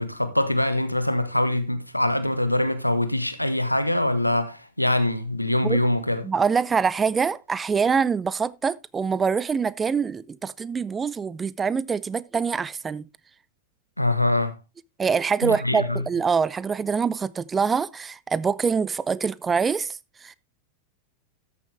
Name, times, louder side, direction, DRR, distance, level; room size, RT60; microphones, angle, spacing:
voice 1, 0.0-6.2 14.0-14.6 15.4-16.0, left 1 dB, 90° left, 1.1 m, -23 dB
voice 2, 6.2-13.1 15.0-20.3, right 5 dB, 15° right, 0.5 m, -25 dB
13.5 x 7.2 x 3.4 m
figure-of-eight pair, 90°, 0 cm